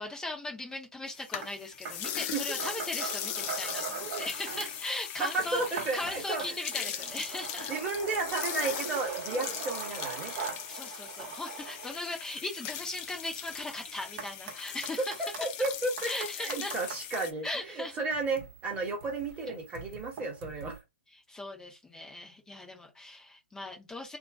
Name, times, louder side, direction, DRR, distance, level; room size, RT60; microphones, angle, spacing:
voice 1, 0.0-7.7 9.3-9.4 10.7-15.1 16.0-16.8 17.4-18.0 21.3-24.2, left 2 dB, 10° left, 1.1 m, -39 dB
sound 1, 1.1-17.3, left 10 dB, 30° left, 0.6 m, -39 dB
sound 2, 1.4-1.5 1.9-4.9 5.2-17.3 18.0-20.8, right 6 dB, 40° right, 1.1 m, -42 dB
voice 2, 5.2-6.6 7.7-10.3 15.2-20.8, right 3 dB, 15° right, 1.5 m, -33 dB
2.9 x 2.7 x 3.6 m
hypercardioid pair, 135°, 8 cm